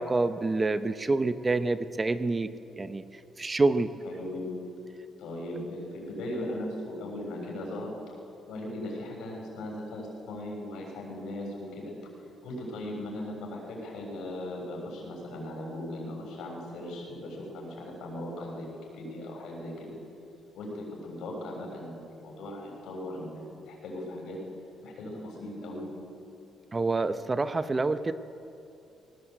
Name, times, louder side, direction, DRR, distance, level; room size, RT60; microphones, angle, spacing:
voice 1, 0.0-2.5 2.8-3.0 3.4-3.9 26.7-28.1, right 3 dB, 25° right, 11 dB, 0.9 m, -27 dB
voice 2, 4.0-4.5 5.2-7.9 8.5-11.9 12.4-20.0 20.5-24.4 24.8-25.9, left 1 dB, 80° left, -1 dB, 7.0 m, -38 dB
19.5 x 18.0 x 8.2 m, 2.7 s
cardioid pair, 90°, 0 cm